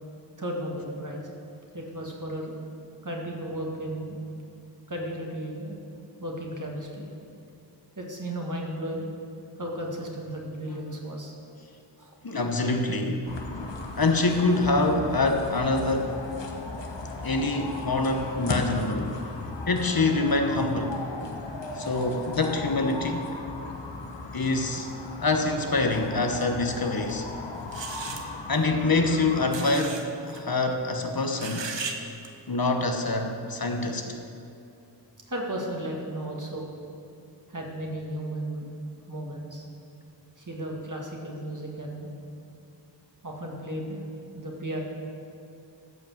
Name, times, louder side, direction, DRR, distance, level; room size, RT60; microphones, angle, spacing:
voice 1, 0.4-1.3 1.7-2.5 3.0-4.2 4.9-5.7 6.2-7.1 8.0-9.1 9.6-11.3 12.0-12.1 35.3-36.7 37.5-38.7 39.1-39.6 40.4-42.1 43.2-44.0 44.3-44.8, right 1 dB, 45° right, -1 dB, 2.1 m, -34 dB
voice 2, 12.2-13.3 14.0-16.2 17.2-19.2 19.7-21.0 21.7-23.4 24.3-24.9 25.2-27.3 28.5-31.7 32.5-34.1, left 2 dB, 55° left, 4 dB, 1.1 m, -25 dB
sound 1, 13.3-29.5, left 3 dB, 85° left, 1.1 m, -37 dB
sound 2, 27.1-27.2 27.7-28.2 29.5-30.0 30.3-30.4 31.3-32.0 32.2-32.3, right 4 dB, 90° right, 1.0 m, -35 dB
14.0 x 5.4 x 7.2 m, 2.6 s
wide cardioid pair, 50°, 42 cm